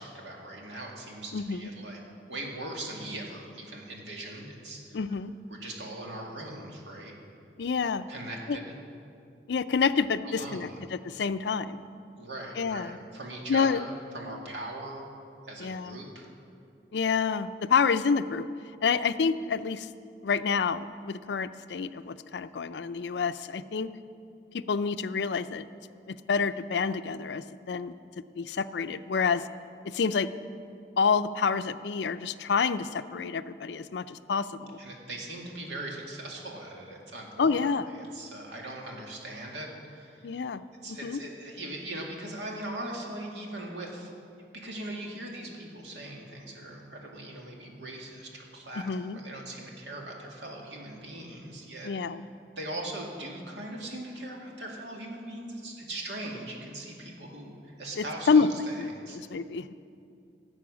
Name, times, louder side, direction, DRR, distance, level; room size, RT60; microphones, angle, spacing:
voice 1, 0.0-2.0 2.3-5.0 5.5-7.1 8.1-8.6 10.2-10.8 12.2-15.0 15.4-16.3 34.8-37.5 37.9-40.4 40.8-44.1 44.5-51.9 52.6-59.2, right 1 dB, 90° right, -1 dB, 2.2 m, -40 dB
voice 2, 4.9-5.3 7.6-8.0 8.5-8.6 9.5-11.8 12.6-13.0 13.5-13.8 15.6-16.0 16.9-18.5 18.8-19.9 20.2-23.9 24.5-25.7 26.1-27.9 28.4-29.5 29.8-30.3 31.0-34.8 37.4-37.9 40.2-40.6 40.9-41.2 48.8-49.2 51.8-52.3 58.0-58.5 58.8-59.7, left 5 dB, 75° left, 13 dB, 0.4 m, -28 dB
16.0 x 7.7 x 6.2 m, 2.5 s
head